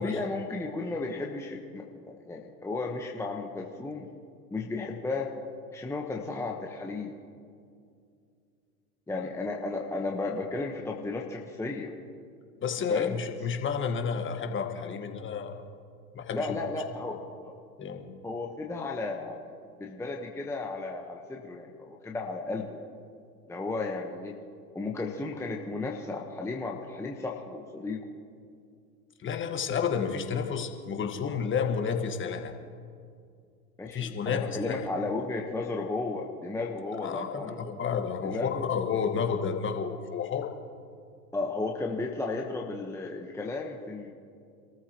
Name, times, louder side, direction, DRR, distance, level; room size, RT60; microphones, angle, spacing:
voice 1, 0.0-4.1 4.5-5.3 5.7-7.1 9.1-11.9 12.9-13.1 16.3-17.2 18.2-19.4 19.8-22.9 23.5-24.3 24.7-28.0 33.8-37.6 38.2-38.6 41.3-44.1, left 3 dB, 5° left, 0 dB, 1.1 m, -34 dB
voice 2, 12.6-15.6 16.1-16.5 17.8-18.1 29.2-32.5 33.9-34.9 37.0-40.5, left 6 dB, 25° left, 4 dB, 1.6 m, -31 dB
27.0 x 14.0 x 3.0 m, 2.3 s
hypercardioid pair, 105°, 48 cm